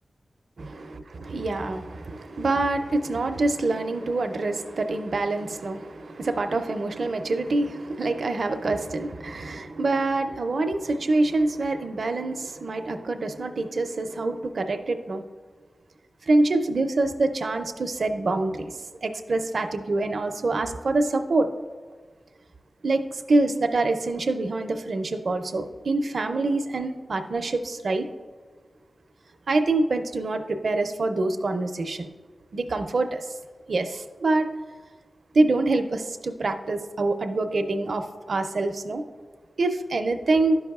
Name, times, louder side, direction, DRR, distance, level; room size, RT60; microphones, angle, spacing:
voice 1, 1.1-15.2 16.3-21.5 22.8-28.1 29.5-32.1 32.5-33.3 33.7-34.5 35.3-39.0 39.6-40.6, right 2 dB, 70° right, 6 dB, 0.5 m, -25 dB
11.5 x 5.4 x 2.3 m, 1.4 s
cardioid pair, 55°, 0 cm